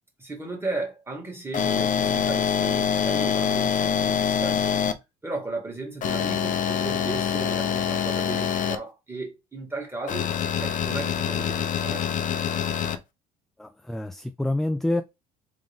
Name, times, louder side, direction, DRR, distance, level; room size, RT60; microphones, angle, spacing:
voice 1, 0.2-4.8 5.2-12.2, right 3 dB, 15° right, 2.1 m, -35 dB
sound 1, 1.5-4.9 6.0-8.8 10.1-13.0, left 7 dB, 50° left, 0.7 m, -25 dB
voice 2, 13.6-15.0, left 1 dB, ahead, 0.3 m, -27 dB
3.8 x 3.6 x 3.6 m
cardioid pair, 110°, 17 cm